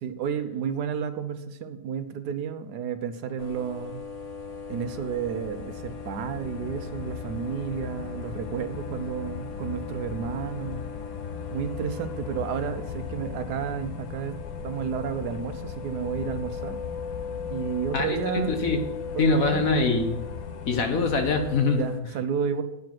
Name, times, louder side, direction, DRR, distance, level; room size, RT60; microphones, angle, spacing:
voice 1, 0.0-4.0 4.7-10.8 11.5-16.8 17.5-18.5 19.1-19.6 21.8-22.6, right 7 dB, 75° right, 9 dB, 1.3 m, -31 dB
sound 1, 3.4-22.0, left 4 dB, 30° left, 0.8 m, -39 dB
sound 2, 4.0-21.6, left 8 dB, 75° left, 1.2 m, -39 dB
voice 2, 17.9-18.8 19.2-20.2 20.7-21.9, left 3 dB, 55° left, 5 dB, 1.6 m, -24 dB
9.4 x 7.1 x 6.0 m, 0.90 s
omnidirectional pair, 1.8 m